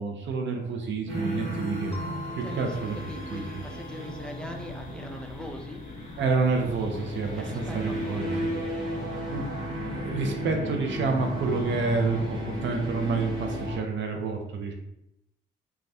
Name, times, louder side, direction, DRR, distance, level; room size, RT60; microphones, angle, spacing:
voice 1, 0.0-2.0 2.3-3.0 3.3-3.4 6.2-8.3 9.3-9.5 9.8-14.7, right 4 dB, 70° right, 3 dB, 0.5 m, -29 dB
sound 1, 1.1-13.8, equal, 90° right, 1.1 m, -34 dB
sound 2, 1.9-6.3, left 3 dB, 30° left, 1.0 m, -46 dB
voice 2, 2.4-5.8 7.3-9.4, left 1 dB, 5° left, 2 dB, 0.3 m, -42 dB
sound 3, 2.5-8.2, left 5 dB, 90° left, 0.4 m, -47 dB
2.6 x 2.3 x 3.3 m, 0.86 s
cardioid pair, 100°, 20 cm